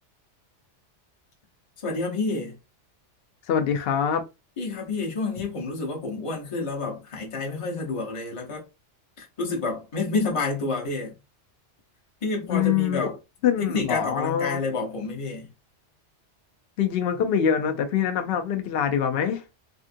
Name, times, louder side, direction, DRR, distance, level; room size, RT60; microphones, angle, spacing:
voice 1, 1.8-2.6 4.6-8.6 9.2-11.2 12.2-13.2 13.6-15.5, left 3 dB, 30° left, 0.8 m, -29 dB
voice 2, 3.5-4.2 12.5-13.1 13.4-14.6 16.8-19.4, left 8 dB, 60° left, 0.8 m, -24 dB
3.5 x 2.6 x 2.5 m
omnidirectional pair, 1.2 m